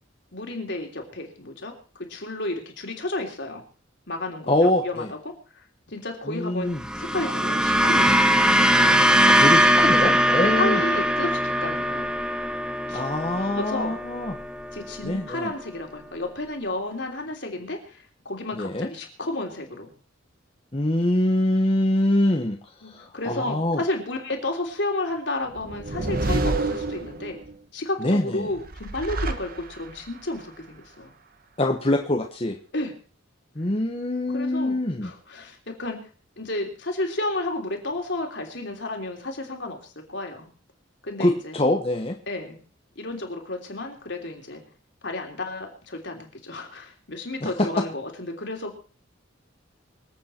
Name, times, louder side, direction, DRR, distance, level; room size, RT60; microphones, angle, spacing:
voice 1, 0.3-3.6 4.1-4.5 4.8-6.7 7.0-8.4 8.7-9.2 10.4-12.2 12.9-13.0 13.5-14.0 14.7-19.9 22.8-27.4 27.7-31.1 32.7-32.9 34.3-36.0 36.4-40.5 41.0-41.6 42.3-42.6 42.9-44.6 45.0-48.8, left 2 dB, 60° left, 2 dB, 3.3 m, -32 dB
voice 2, 4.5-5.1 6.2-6.8 9.2-10.8 12.9-14.3 15.0-15.5 18.5-18.9 20.7-23.8 28.0-28.5 31.6-32.6 33.5-35.1 41.2-42.2 47.4-47.7, left 1 dB, 30° left, 2 dB, 1.1 m, -24 dB
sound 1, 6.7-15.2, equal, 5° right, 0.6 m, -21 dB
sound 2, 25.5-27.5 28.6-30.1, right 2 dB, 45° right, 1.3 m, -28 dB
25.5 x 8.5 x 4.4 m, 0.39 s
head